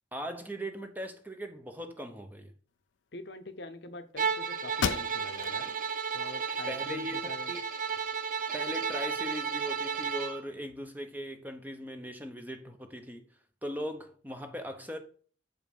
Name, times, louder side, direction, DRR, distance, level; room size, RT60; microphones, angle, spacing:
voice 1, 0.1-2.5 6.7-7.6 8.5-13.2 13.6-15.0, equal, 10° right, 0.8 m, -39 dB
voice 2, 3.1-5.8 6.1-7.5, left 2 dB, 60° left, 0.8 m, -44 dB
Bowed string instrument, 4.2-10.4, right 6 dB, 45° right, 0.7 m, -33 dB
sound 1, 4.3-4.4 4.7-5.6 6.1-6.2 6.7-7.6, left 7 dB, 75° left, 0.4 m, -35 dB
7.4 x 5.3 x 5.2 m
head